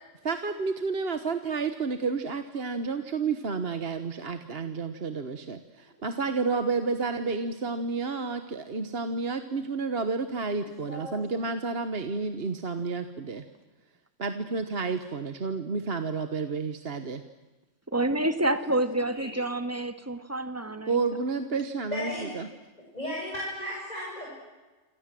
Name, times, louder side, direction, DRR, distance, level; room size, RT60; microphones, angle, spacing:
voice 1, 0.2-13.4 14.2-17.2 20.9-22.5, right 4 dB, 50° right, 9 dB, 1.5 m, -30 dB
voice 2, 10.8-11.2 18.9-19.4 21.9-22.3 22.9-24.3, equal, 30° left, -4 dB, 7.8 m, -35 dB
voice 3, 17.9-21.0, right 1 dB, 10° right, 10 dB, 1.7 m, -28 dB
27.5 x 27.0 x 7.7 m, 1.2 s
omnidirectional pair, 1.3 m